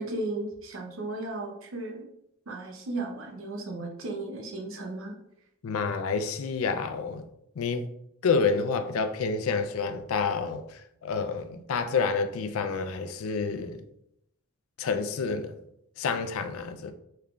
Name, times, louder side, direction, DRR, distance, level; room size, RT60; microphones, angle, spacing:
voice 1, 0.0-2.0 2.5-5.2, right 2 dB, 65° right, 0.7 m, -35 dB
voice 2, 5.6-7.2 7.6-7.9 8.2-10.6 11.0-13.8 14.8-15.6 16.0-16.9, left 5 dB, 75° left, 0.4 m, -28 dB
3.7 x 3.2 x 2.3 m
head